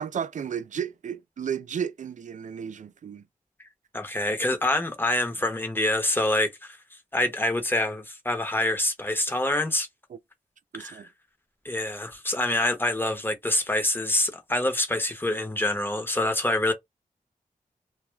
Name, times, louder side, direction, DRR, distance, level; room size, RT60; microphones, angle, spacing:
voice 1, 0.0-3.2 10.1-10.2 10.7-11.1, right 8 dB, 60° right, 0.4 m, -33 dB
voice 2, 3.9-6.8 7.1-9.9 10.7-11.0 11.6-16.7, left 1 dB, 15° left, 0.9 m, -26 dB
2.3 x 2.0 x 3.1 m
cardioid pair, 55°, 14 cm